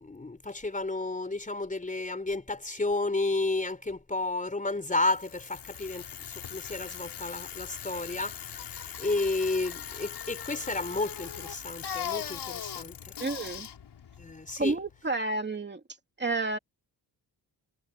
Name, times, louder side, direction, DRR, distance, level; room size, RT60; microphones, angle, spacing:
voice 1, 0.0-8.4 9.0-13.1 14.2-14.7, left 2 dB, 20° left, 4.2 m, -32 dB
Bicycle, 4.9-15.0, left 8 dB, 80° left, 5.4 m, -40 dB
voice 2, 13.2-13.7 14.6-15.8 16.2-16.6, right 3 dB, 25° right, 2.7 m, -30 dB
wide cardioid pair, 115°, 40 cm